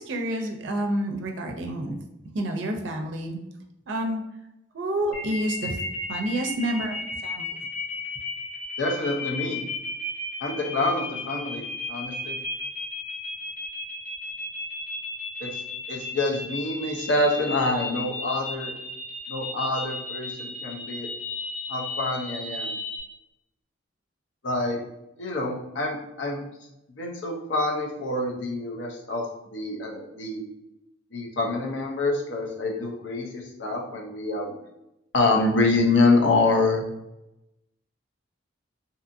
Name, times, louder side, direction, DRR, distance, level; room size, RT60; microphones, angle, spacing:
voice 1, 0.0-2.0 2.3-3.4 3.9-4.2 4.7-5.8 6.1-7.5, right 1 dB, 60° right, 3 dB, 0.4 m, -29 dB
sound 1, 5.1-23.0, left 2 dB, 40° left, 0.9 m, -34 dB
voice 2, 8.8-9.6 10.4-11.6 11.9-12.4 15.4-15.5 15.9-18.7 19.3-21.1 21.7-22.8 24.4-24.8 25.2-26.4 26.9-30.4 31.1-34.5 35.1-36.8, left 2 dB, 60° left, 0 dB, 0.6 m, -26 dB
2.7 x 2.5 x 2.5 m, 0.90 s
head